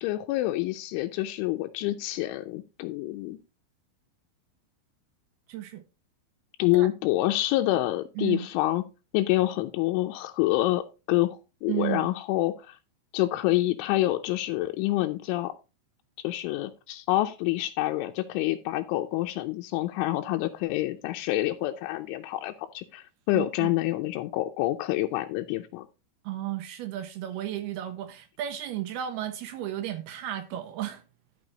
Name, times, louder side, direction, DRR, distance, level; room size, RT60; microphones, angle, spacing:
voice 1, 0.0-3.4 6.6-8.8 9.1-12.8 13.1-15.5 16.2-25.9, left 16 dB, 85° left, 3.1 m, -27 dB
voice 2, 5.5-5.8 6.7-6.9 8.2-8.5 11.7-12.1 23.3-23.7 26.2-31.0, right 13 dB, 80° right, 2.3 m, -33 dB
12.5 x 5.6 x 3.9 m
omnidirectional pair, 5.4 m